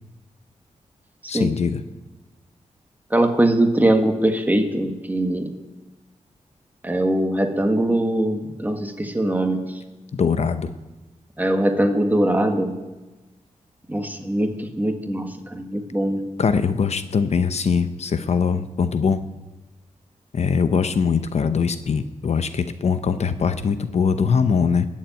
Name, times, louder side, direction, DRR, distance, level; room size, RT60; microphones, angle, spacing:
voice 1, 1.3-1.8 10.1-10.7 16.4-19.2 20.3-24.9, left 6 dB, 60° left, 10 dB, 0.8 m, -22 dB
voice 2, 3.1-5.5 6.8-9.8 11.4-12.8 13.9-16.3, right 1 dB, 15° right, 5 dB, 1.5 m, -21 dB
21.0 x 7.5 x 9.3 m, 1.2 s
wide cardioid pair, 160°, 13 cm